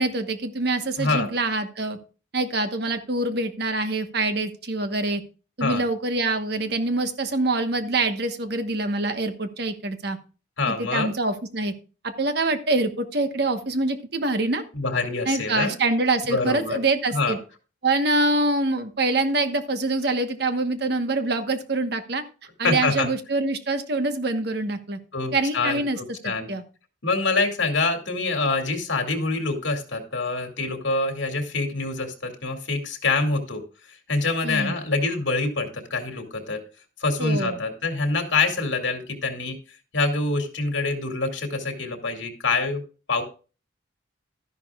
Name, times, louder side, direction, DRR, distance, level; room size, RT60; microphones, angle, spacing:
voice 1, 0.0-2.0 2.3-5.2 5.6-10.2 10.7-11.7 12.0-14.6 15.2-17.4 17.8-22.2 22.6-25.0 25.3-26.0 26.2-26.6 34.4-34.8 37.2-37.6, right 2 dB, 55° right, 8 dB, 1.2 m, -25 dB
voice 2, 1.0-1.3 5.6-5.8 10.6-11.1 14.7-15.8 16.3-16.8 17.1-17.4 22.6-23.1 25.1-25.8 26.2-26.5 27.0-33.6 34.1-36.6 37.0-39.6 39.9-42.8 43.1-43.2, left 3 dB, 70° left, 4 dB, 2.5 m, -25 dB
12.5 x 11.0 x 2.4 m, 0.34 s
head